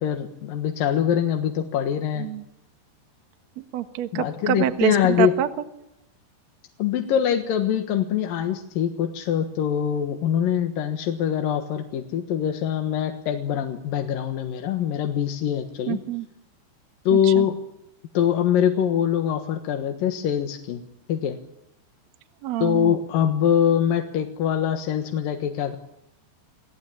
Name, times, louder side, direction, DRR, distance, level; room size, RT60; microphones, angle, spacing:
voice 1, 0.0-2.3 4.1-5.3 6.8-16.0 17.1-17.6 18.1-20.8 21.1-21.4 22.6-25.8, left 9 dB, 60° left, 5 dB, 2.8 m, -23 dB
voice 2, 3.6-5.5 15.9-16.3 17.1-17.5 22.4-22.9, right 12 dB, 60° right, 8 dB, 1.8 m, -26 dB
28.5 x 18.5 x 8.7 m, 0.82 s
omnidirectional pair, 5.1 m